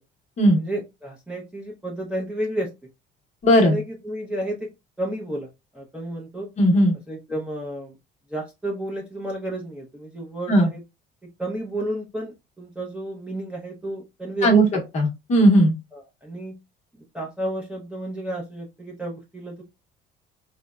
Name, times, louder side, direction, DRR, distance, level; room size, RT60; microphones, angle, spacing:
voice 1, 0.5-2.7 3.6-4.7 5.0-5.5 5.7-6.5 7.1-8.0 8.3-10.8 11.4-14.7 15.9-16.6 17.1-19.6, right 1 dB, 5° right, -3 dB, 0.6 m, -31 dB
voice 2, 3.4-3.8 6.6-6.9 10.5-10.7 14.4-14.6 14.9-15.7, right 1 dB, 35° left, 2 dB, 0.8 m, -16 dB
3.9 x 2.0 x 2.2 m, 0.23 s
cardioid pair, 160°, 20 cm